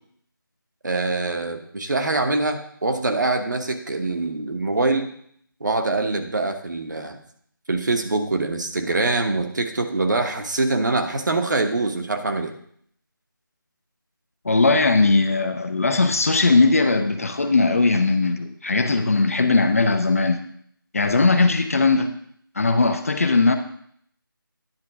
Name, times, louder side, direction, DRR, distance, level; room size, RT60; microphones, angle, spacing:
voice 1, 0.8-5.1 5.6-7.2 7.7-12.5, right 3 dB, 55° right, 4 dB, 1.2 m, -24 dB
voice 2, 14.4-20.4 20.9-22.1 22.6-23.6, left 3 dB, 40° left, 7 dB, 0.7 m, -19 dB
10.5 x 3.8 x 6.0 m, 0.64 s
figure-of-eight pair, 170°, 12 cm